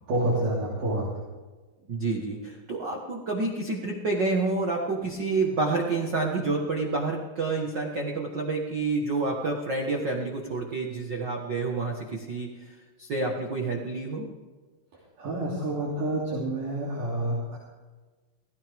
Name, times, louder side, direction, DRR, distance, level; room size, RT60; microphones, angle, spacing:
voice 1, 0.1-1.1 15.2-17.6, right 1 dB, 55° right, -6 dB, 4.4 m, -28 dB
voice 2, 1.9-14.3, right 3 dB, 75° right, 0 dB, 1.0 m, -29 dB
17.0 x 17.0 x 3.6 m, 1.3 s
omnidirectional pair, 4.8 m